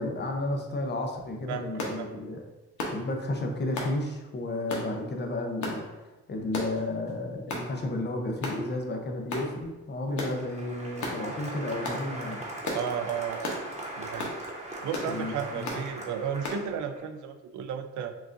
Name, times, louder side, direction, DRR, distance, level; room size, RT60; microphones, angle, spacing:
voice 1, 0.0-2.4 2.8-5.9 6.3-12.4 15.0-15.8, left 2 dB, 35° left, 2 dB, 0.7 m, -32 dB
voice 2, 1.5-2.1 12.7-13.6 14.0-14.3 14.8-18.1, right 7 dB, 75° right, 7 dB, 0.5 m, -33 dB
sound 1, 1.8-2.0 2.8-3.0 3.8-3.9 4.7-4.9 5.6-5.8 6.5-6.8 7.5-7.7 8.4-8.6 9.3-9.5 10.2-10.4 11.0-11.2 11.8-12.0 12.6-12.9 13.4-13.6 14.2-14.4 14.9-15.1 15.6-15.8 16.4-16.6, left 2 dB, 70° left, 0.9 m, -33 dB
Applause, 10.1-17.0, right 1 dB, 20° right, 1.0 m, -40 dB
5.9 x 2.4 x 2.6 m, 1.1 s
cardioid pair, 90°, 30 cm